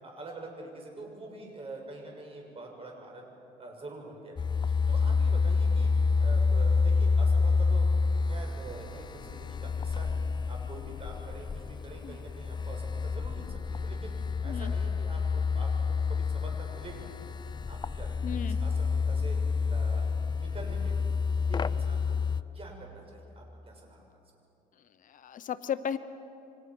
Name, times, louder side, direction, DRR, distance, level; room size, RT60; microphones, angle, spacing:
voice 1, 0.0-3.3 3.6-4.4 4.9-7.9 8.1-10.2 10.5-14.1 14.4-17.1 17.7-19.4 19.7-21.1 21.5-22.2 22.5-24.0, right 2 dB, 35° right, 1 dB, 6.6 m, -46 dB
sound 1, 4.4-22.4, left 4 dB, 25° left, 0.6 m, -28 dB
voice 2, 18.2-18.6 25.0-26.0, left 8 dB, 50° left, 12 dB, 0.9 m, -35 dB
29.5 x 25.0 x 6.1 m, 2.7 s
cardioid pair, 110°, 17 cm